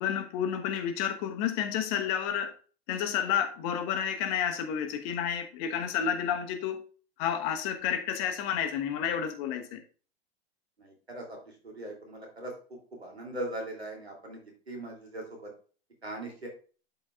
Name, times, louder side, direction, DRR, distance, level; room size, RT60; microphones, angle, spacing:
voice 1, 0.0-2.5 2.9-6.8 7.2-9.8, left 8 dB, 40° left, 1.3 m, -30 dB
voice 2, 10.8-11.4 11.6-12.5 13.0-14.4 14.7-15.5 16.0-16.5, right 1 dB, 90° right, 3.0 m, -39 dB
12.0 x 5.2 x 2.4 m
figure-of-eight pair, 95°, 31 cm